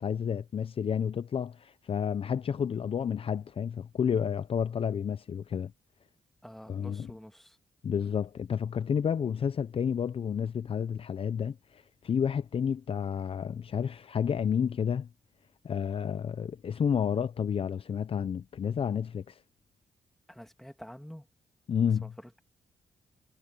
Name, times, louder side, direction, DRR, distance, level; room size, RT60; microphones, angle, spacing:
voice 1, 0.0-5.7 6.7-7.1 7.8-15.1 15.6-19.4 21.7-22.1, left 7 dB, 50° left, 0.6 m, -30 dB
voice 2, 6.4-7.6 20.3-21.3 22.0-22.4, equal, ahead, 2.2 m, -47 dB
cardioid pair, 95°, 12 cm